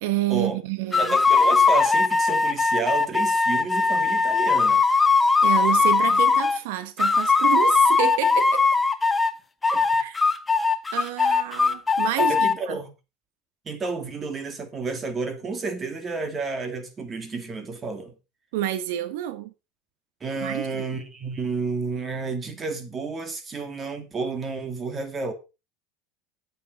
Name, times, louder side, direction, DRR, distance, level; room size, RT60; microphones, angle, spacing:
voice 1, 0.0-1.2 5.4-8.6 9.7-10.3 10.9-12.8 18.5-19.5 20.4-20.8, right 14 dB, 80° right, 1.1 m, -29 dB
sound 1, 0.9-6.6 7.0-9.3 9.6-12.5, left 4 dB, 10° left, 0.9 m, -20 dB
voice 2, 1.0-4.8 12.2-12.9 13.7-18.1 20.2-25.3, right 4 dB, 20° right, 2.4 m, -31 dB
9.3 x 8.4 x 5.3 m
supercardioid pair, 145°, 0 cm